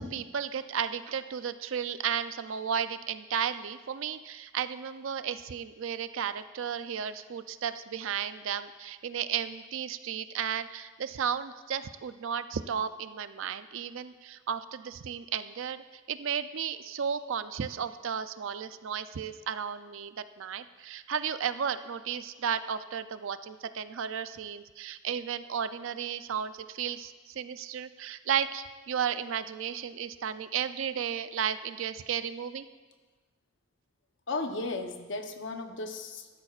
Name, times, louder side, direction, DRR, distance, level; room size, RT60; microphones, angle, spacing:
voice 1, 0.0-32.7, right 8 dB, 65° right, 12 dB, 0.4 m, -34 dB
voice 2, 34.3-36.3, left 3 dB, 55° left, 5 dB, 0.8 m, -35 dB
15.0 x 12.0 x 2.4 m, 1.3 s
head